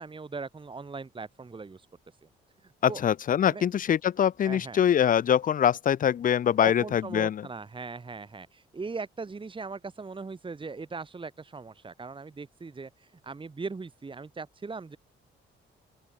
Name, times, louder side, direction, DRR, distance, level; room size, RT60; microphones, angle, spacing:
voice 1, 0.0-1.9 2.2-2.3 2.6-3.0 3.5-3.6 4.4-4.8 6.6-15.0, right 4 dB, 25° right, 2.1 m, -39 dB
voice 2, 2.8-7.5, left 9 dB, 45° left, 0.6 m, -24 dB
open air
cardioid pair, 90°, 20 cm